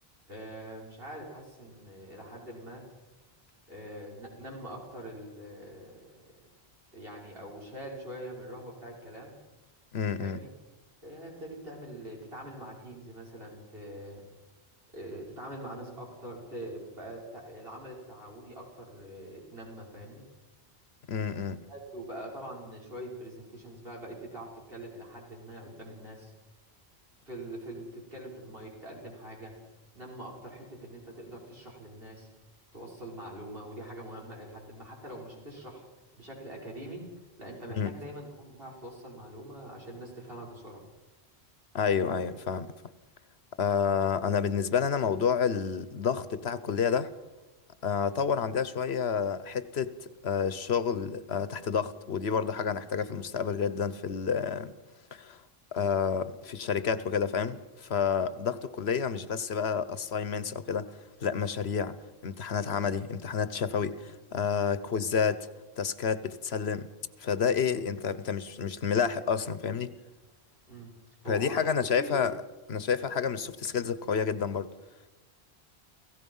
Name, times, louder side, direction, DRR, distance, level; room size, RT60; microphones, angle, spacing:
voice 1, 0.3-2.8 3.7-6.0 6.9-9.3 10.2-10.5 11.0-14.2 14.9-20.2 21.7-26.3 27.3-29.5 29.9-32.3 32.7-35.9 36.2-37.1 37.4-40.8 67.6-68.0 70.7-70.9 71.2-72.3, right 1 dB, 65° right, 6.1 m, -43 dB
voice 2, 9.9-10.4 21.1-21.6 37.7-37.9 41.7-42.7 43.6-47.1 47.8-49.9 50.2-54.7 55.1-55.4 55.7-62.0 62.2-65.5 65.8-66.9 67.2-70.0 71.3-72.3 72.7-74.7, left 6 dB, 80° left, 1.3 m, -29 dB
30.0 x 16.5 x 5.6 m
omnidirectional pair, 1.1 m